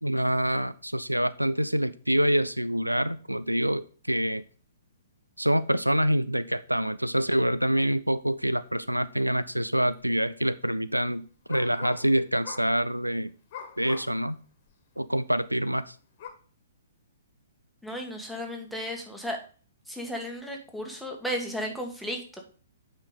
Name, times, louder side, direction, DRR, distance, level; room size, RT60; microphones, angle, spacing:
voice 1, 0.0-4.4 5.4-13.3 13.8-14.4 15.0-15.9, right 1 dB, 90° right, 16 dB, 0.4 m, -26 dB
sound 1, 9.5-9.6 9.9-10.3 11.5-12.1 12.4-12.8 13.5-14.2 14.7-14.8 16.2-16.3, left 7 dB, 40° left, 1.5 m, -42 dB
voice 2, 17.8-19.4 19.9-22.4, equal, ahead, 1 dB, 1.4 m, -34 dB
8.8 x 5.2 x 3.8 m, 0.40 s
figure-of-eight pair, 120°, 0 cm